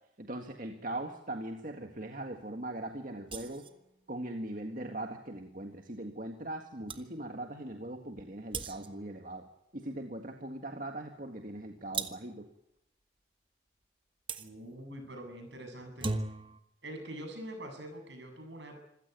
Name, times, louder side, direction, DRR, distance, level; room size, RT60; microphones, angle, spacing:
voice 1, 0.2-3.6 4.1-9.5 9.7-12.5, right 1 dB, 45° right, 4 dB, 1.9 m, -40 dB
sound 1, 3.3-3.8 6.5-6.6 6.9-7.1 8.5-9.1 11.9-12.4 14.3-14.5 15.8-16.6, right 3 dB, 25° right, 1.3 m, -37 dB
voice 2, 14.4-16.1 16.8-18.7, right 1 dB, 75° right, 5 dB, 7.8 m, -44 dB
26.0 x 16.0 x 9.5 m, 0.81 s
head